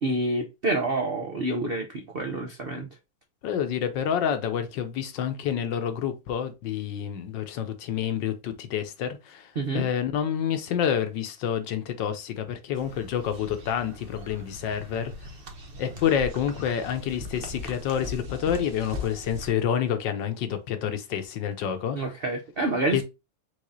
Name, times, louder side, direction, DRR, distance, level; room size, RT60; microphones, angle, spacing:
voice 1, 0.0-2.9 9.6-9.8 21.9-23.0, right 2 dB, 70° right, 0.5 m, -28 dB
voice 2, 3.4-15.1 15.8-22.0 22.9-23.0, left 8 dB, 70° left, 1.4 m, -28 dB
sound 1, 12.7-19.5, left 1 dB, 45° right, 0.8 m, -40 dB
4.8 x 3.7 x 2.6 m
omnidirectional pair, 2.1 m